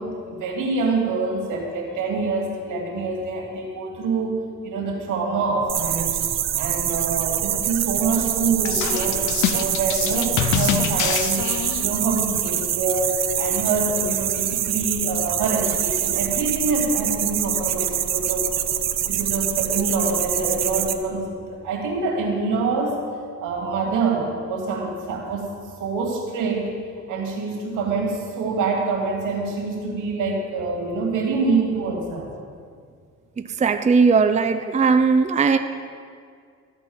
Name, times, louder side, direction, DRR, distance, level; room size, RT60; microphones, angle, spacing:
voice 1, 0.0-4.3 4.6-6.2 6.5-11.5 11.8-18.6 19.0-23.0 23.4-25.5 25.8-26.7 27.1-32.3, right 3 dB, 90° right, 0 dB, 2.6 m, -25 dB
sound 1, 5.7-20.9, right 10 dB, 60° right, 0.8 m, -25 dB
sound 2, 8.6-12.0, left 10 dB, 75° left, 0.7 m, -25 dB
voice 2, 33.4-35.6, right 5 dB, 25° right, 8 dB, 0.5 m, -18 dB
13.5 x 4.6 x 8.8 m, 2.1 s
cardioid pair, 90°, 30 cm